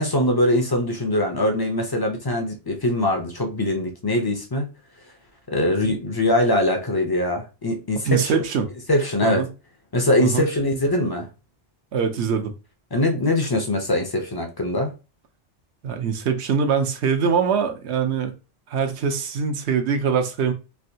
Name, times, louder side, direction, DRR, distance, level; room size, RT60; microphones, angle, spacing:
voice 1, 0.0-4.7 5.5-8.4 8.9-9.4 9.9-11.3 12.9-14.9, left 1 dB, 30° left, 0.4 m, -22 dB
voice 2, 8.0-8.7 9.2-9.5 10.2-10.5 11.9-12.5 15.8-18.3 18.7-20.5, right 6 dB, 75° right, 0.9 m, -23 dB
3.3 x 2.6 x 2.7 m
omnidirectional pair, 1.2 m